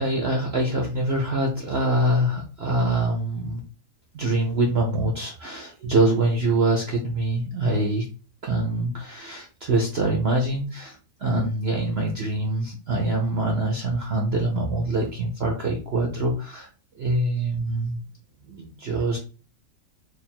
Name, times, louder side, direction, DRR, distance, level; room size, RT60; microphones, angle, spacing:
voice 1, 0.0-3.6 4.1-8.0 8.4-16.7 16.9-18.0 18.5-19.2, right 2 dB, 70° right, 0 dB, 0.6 m, -24 dB
3.4 x 2.3 x 4.2 m, 0.36 s
omnidirectional pair, 1.9 m